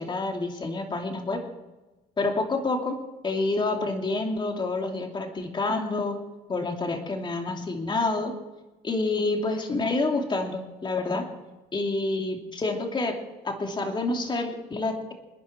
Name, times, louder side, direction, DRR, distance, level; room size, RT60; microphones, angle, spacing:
voice 1, 0.0-1.4 2.2-6.2 6.5-8.3 8.8-11.3 11.7-15.1, left 3 dB, 30° left, 3 dB, 2.8 m, -28 dB
26.0 x 10.5 x 4.5 m, 1.1 s
cardioid pair, 110°, 17 cm